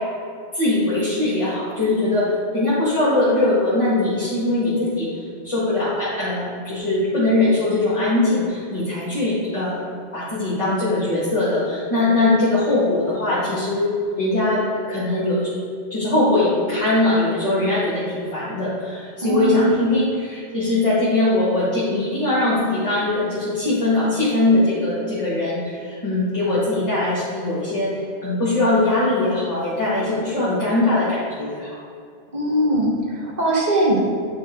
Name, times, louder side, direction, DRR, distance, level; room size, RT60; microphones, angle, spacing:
voice 1, 0.5-2.2 2.5-5.1 5.4-9.8 10.1-14.6 14.9-15.5 15.9-27.9 28.2-31.7, left 2 dB, 30° left, -11 dB, 1.6 m, -21 dB
voice 2, 19.2-19.8 32.3-34.0, right 1 dB, 40° right, -2 dB, 1.0 m, -21 dB
8.9 x 3.3 x 3.5 m, 2.4 s
omnidirectional pair, 1.2 m